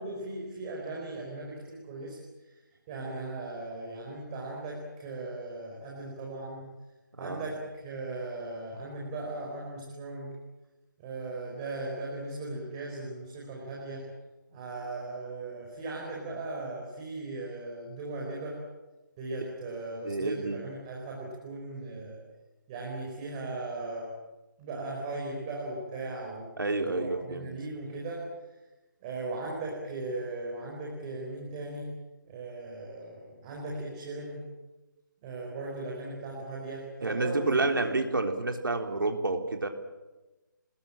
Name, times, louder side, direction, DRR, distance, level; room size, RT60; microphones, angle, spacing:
voice 1, 0.0-2.6 2.9-6.7 7.2-10.3 11.0-14.1 14.5-18.6 19.2-22.2 22.7-24.1 24.6-26.5 26.8-28.5 29.0-31.9 32.2-34.4 35.2-37.9, right 2 dB, 20° right, -2 dB, 4.8 m, -38 dB
voice 2, 7.2-7.5 20.0-20.6 26.6-27.5 37.0-39.7, right 2 dB, 85° right, 5 dB, 3.6 m, -29 dB
28.0 x 20.0 x 8.8 m, 1.1 s
hypercardioid pair, 165°, 11 cm